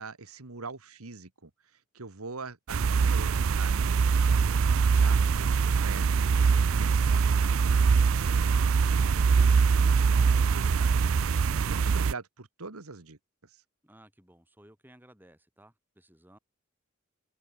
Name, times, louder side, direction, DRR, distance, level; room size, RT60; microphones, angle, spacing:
voice 1, 0.0-6.2 6.5-13.6, right 3 dB, 90° right, 1.7 m, -44 dB
sound 1, 2.7-12.1, right 5 dB, 70° right, 0.5 m, -23 dB
voice 2, 13.8-16.4, right 1 dB, 10° right, 6.8 m, -57 dB
head